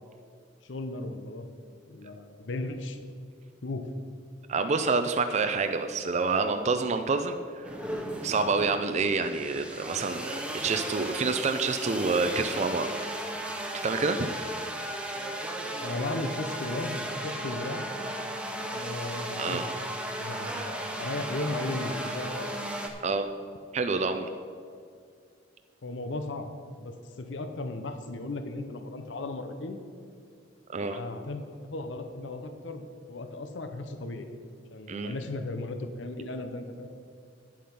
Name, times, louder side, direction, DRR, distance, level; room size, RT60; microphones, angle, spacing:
voice 1, 0.6-1.5 1.9-3.0 3.6-3.9 15.8-17.9 18.7-19.8 20.2-22.6 25.8-26.5 26.8-29.8 30.9-34.3 34.7-36.9, left 2 dB, 70° left, 7 dB, 0.7 m, -36 dB
voice 2, 4.5-7.7 8.2-12.9 13.8-14.3 19.4-19.6 23.0-23.3 23.7-24.3 30.7-31.0 34.9-35.1, right 4 dB, 35° right, 8 dB, 0.4 m, -28 dB
sound 1, 7.6-22.9, right 1 dB, 5° right, 0.8 m, -35 dB
9.5 x 7.5 x 5.4 m, 2.2 s
head